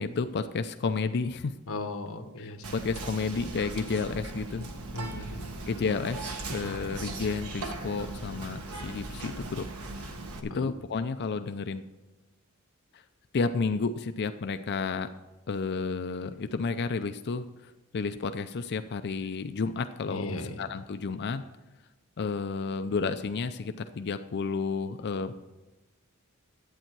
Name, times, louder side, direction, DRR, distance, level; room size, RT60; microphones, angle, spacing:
voice 1, 0.0-1.5 2.4-4.7 5.7-9.7 9.9-11.8 12.9-13.0 13.3-15.1 15.5-17.4 17.9-21.4 22.2-25.3, left 4 dB, 50° left, 9 dB, 0.4 m, -31 dB
voice 2, 1.7-2.6 4.9-5.5 10.5-10.7 20.1-20.5, left 2 dB, 70° left, 6 dB, 1.2 m, -37 dB
Whispering, 2.6-10.4, right 3 dB, 85° right, 1.3 m, -38 dB
11.5 x 8.8 x 4.6 m, 1.1 s
head